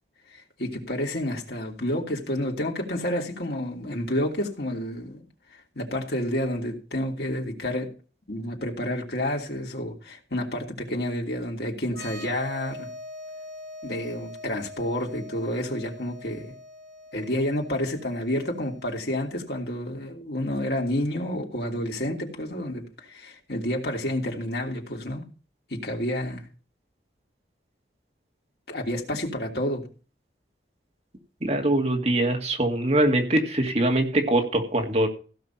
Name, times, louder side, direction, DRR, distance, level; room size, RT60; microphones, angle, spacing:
voice 1, 0.6-5.2 5.7-7.9 8.3-12.9 13.8-16.5 17.1-25.3 25.7-26.5 28.7-29.9, left 1 dB, 65° left, 3.1 m, -29 dB
sound 1, 11.9-19.4, left 1 dB, 85° right, 3.4 m, -43 dB
voice 2, 31.4-35.1, right 1 dB, 35° right, 2.1 m, -23 dB
16.0 x 6.1 x 5.9 m
head